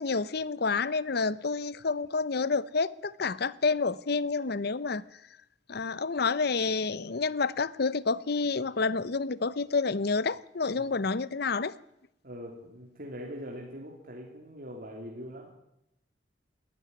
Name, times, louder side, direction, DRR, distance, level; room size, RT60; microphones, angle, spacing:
voice 1, 0.0-5.0 5.7-11.7, left 4 dB, 60° left, 0.8 m, -29 dB
voice 2, 10.7-11.1 12.2-15.5, equal, 55° right, 3.1 m, -42 dB
19.0 x 14.0 x 9.7 m
head